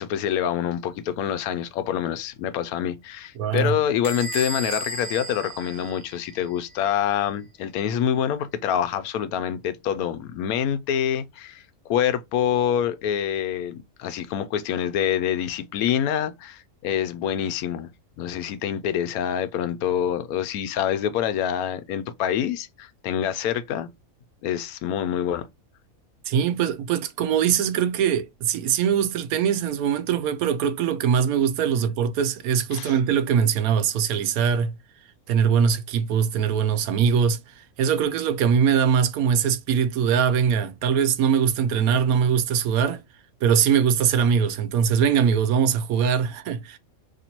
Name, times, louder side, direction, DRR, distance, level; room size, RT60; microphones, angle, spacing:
voice 1, 0.0-11.6 11.9-17.9 18.2-23.9 24.4-25.5 32.7-32.9, left 9 dB, 85° left, 1.1 m, -26 dB
voice 2, 3.4-3.7 26.3-34.7 35.3-43.0 43.4-46.8, right 7 dB, 90° right, 1.1 m, -22 dB
Bell / Squeak, 4.0-6.6, right 1 dB, 15° right, 1.1 m, -34 dB
4.1 x 3.0 x 2.9 m
omnidirectional pair, 1.5 m